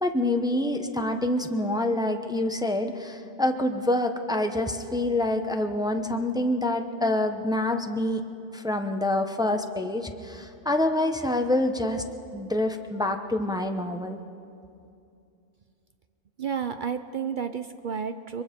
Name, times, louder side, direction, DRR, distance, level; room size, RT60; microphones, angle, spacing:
voice 1, 0.0-8.2 8.5-12.0 12.3-14.2, left 1 dB, 5° right, 5 dB, 0.7 m, -26 dB
voice 2, 16.4-18.4, right 7 dB, 50° right, 9 dB, 0.6 m, -31 dB
23.0 x 23.0 x 5.2 m, 2.5 s
omnidirectional pair, 1.4 m